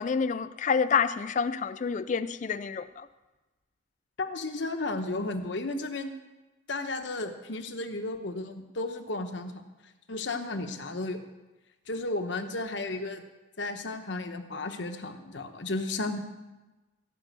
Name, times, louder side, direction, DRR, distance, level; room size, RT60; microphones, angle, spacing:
voice 1, 0.0-3.1, left 6 dB, 35° left, 14 dB, 0.3 m, -28 dB
voice 2, 4.2-6.1 6.7-9.5 10.1-11.2 11.9-13.2 13.6-16.2, left 2 dB, 60° left, 7 dB, 1.0 m, -33 dB
16.0 x 5.5 x 8.2 m, 1.1 s
head